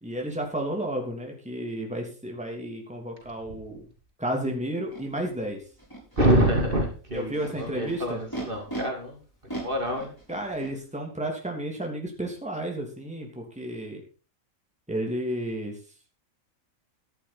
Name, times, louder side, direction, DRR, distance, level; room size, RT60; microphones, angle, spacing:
voice 1, 0.0-3.8 4.2-5.6 7.1-8.2 10.3-14.0 14.9-15.8, right 1 dB, 5° right, 1 dB, 3.0 m, -32 dB
Animal, 4.9-5.0 5.8-6.3 7.1-8.8 9.5-10.7, right 2 dB, 15° left, 7.3 m, -38 dB
voice 2, 6.2-9.2 9.5-10.1, right 1 dB, 40° right, 2 dB, 3.1 m, -26 dB
14.0 x 11.0 x 4.2 m, 0.35 s
omnidirectional pair, 1.4 m